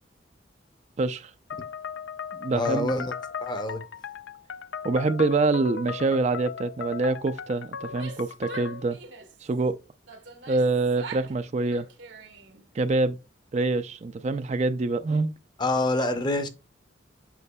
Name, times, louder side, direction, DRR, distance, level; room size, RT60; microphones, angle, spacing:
voice 1, 1.0-1.3 2.4-2.9 4.8-9.0 9.4-9.8 10.5-11.9 12.7-13.2 13.5-15.3, right 3 dB, 35° right, 0.4 m, -25 dB
sound 1, 1.5-8.9, left 6 dB, 80° left, 0.5 m, -37 dB
voice 2, 2.5-3.1 3.4-3.8 15.6-16.5, left 2 dB, 25° left, 0.7 m, -26 dB
Female speech woman speaking / Yell, 7.8-9.4 10.1-11.3 11.6-12.6, right 4 dB, 80° right, 1.1 m, -43 dB
8.1 x 5.7 x 2.2 m
head